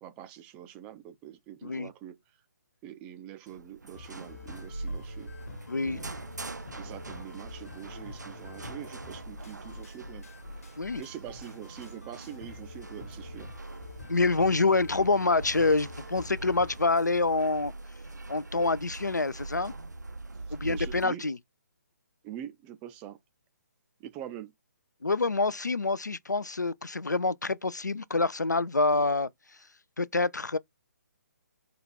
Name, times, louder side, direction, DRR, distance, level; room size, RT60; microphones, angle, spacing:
voice 1, 0.0-2.4 2.8-5.3 5.8-6.1 6.8-10.3 10.9-13.5 15.0-15.1 20.5-21.2 22.2-23.2 24.0-24.5, right 11 dB, 15° right, 0.3 m, -44 dB
sound 1, 3.5-21.0, right 2 dB, 85° right, 0.5 m, -43 dB
sound 2, 3.9-16.9, left 3 dB, 55° left, 1.2 m, -47 dB
voice 2, 5.7-6.0 10.8-11.0 14.1-17.7 18.3-19.7 20.5-21.4 25.0-29.3 30.0-30.6, left 3 dB, 85° left, 0.4 m, -26 dB
4.4 x 2.4 x 3.8 m
figure-of-eight pair, 140°, 9 cm